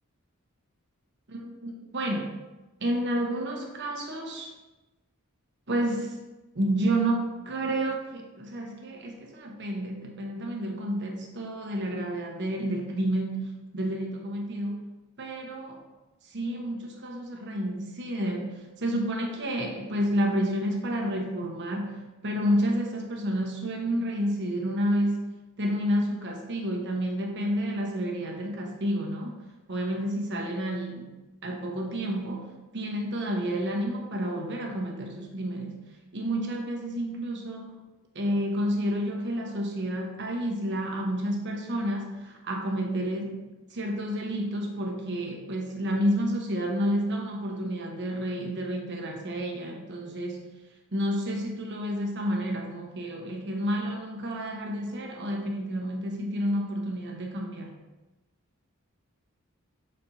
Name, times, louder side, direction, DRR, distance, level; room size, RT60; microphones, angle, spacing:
voice 1, 1.3-2.3 2.8-4.5 5.7-6.2 6.5-14.8 15.2-15.8 16.2-29.4 29.7-31.1 31.4-35.8 36.1-37.8 38.1-50.5 50.9-57.7, equal, 55° right, 1 dB, 1.0 m, -30 dB
4.3 x 4.2 x 5.5 m, 1.1 s
head